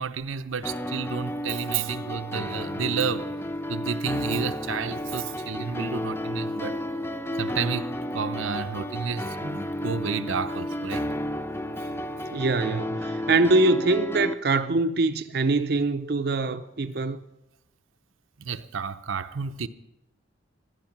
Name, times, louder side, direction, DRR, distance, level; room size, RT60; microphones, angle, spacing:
voice 1, 0.0-3.3 3.7-6.8 7.4-11.1 18.4-19.7, right 6 dB, 90° right, 0.7 m, -31 dB
sound 1, 0.6-14.3, left 1 dB, 10° left, 0.4 m, -32 dB
voice 2, 12.3-17.2, right 2 dB, 50° right, 0.5 m, -23 dB
16.0 x 11.5 x 6.0 m
head